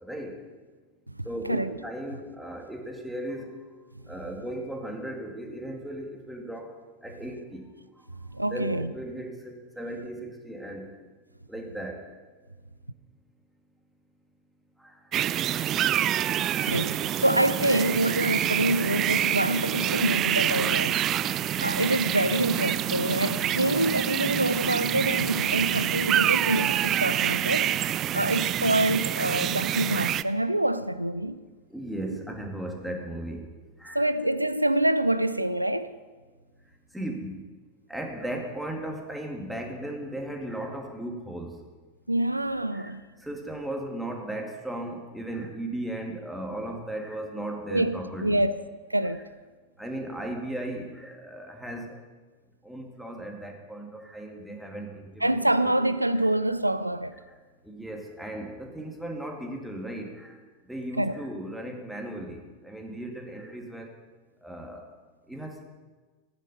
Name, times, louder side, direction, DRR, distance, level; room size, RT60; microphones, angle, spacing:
voice 1, 0.0-0.3 1.3-3.5 4.1-6.7 7.0-7.6 8.5-10.8 11.5-12.0 14.8-14.9 31.7-33.4 33.8-34.0 36.9-37.4 37.9-41.5 42.7-43.0 43.2-48.5 49.0-49.2 49.8-51.9 52.6-55.9 57.6-60.4 60.7-63.9 64.4-64.8 65.3-65.6, right 1 dB, ahead, 2.3 m, -36 dB
voice 2, 1.1-1.8 8.3-8.9 16.7-27.8 28.1-31.3 32.1-32.2 33.9-35.9 42.1-43.0 47.7-48.5 48.9-49.2 55.2-57.2 61.0-61.1, right 1 dB, 85° right, 0.5 m, -26 dB
sound 1, 15.1-30.2, right 11 dB, 30° right, 0.4 m, -27 dB
15.0 x 10.0 x 5.5 m
figure-of-eight pair, 90°, 0 cm